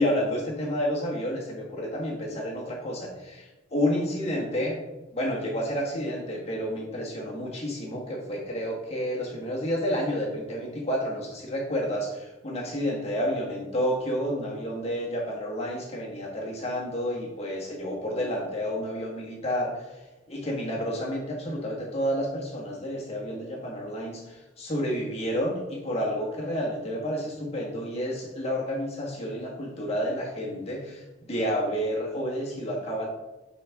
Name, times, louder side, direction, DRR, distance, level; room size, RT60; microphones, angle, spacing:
voice 1, 0.0-4.8 5.1-19.9 20.3-33.1, equal, 30° left, -3 dB, 1.6 m, -30 dB
9.9 x 4.2 x 3.5 m, 1.1 s
head